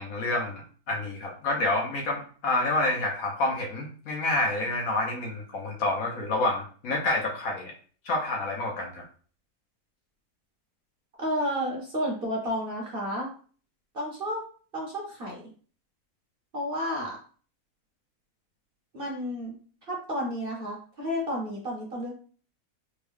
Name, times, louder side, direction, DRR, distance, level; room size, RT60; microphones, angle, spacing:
voice 1, 0.0-7.7 8.0-9.0, left 2 dB, 65° left, 1 dB, 1.2 m, -28 dB
voice 2, 11.2-13.3 13.9-14.4 14.7-15.4 16.5-17.2 18.9-19.6 19.9-22.1, equal, 45° right, -2 dB, 1.0 m, -31 dB
3.5 x 2.2 x 3.4 m, 0.42 s
omnidirectional pair, 1.6 m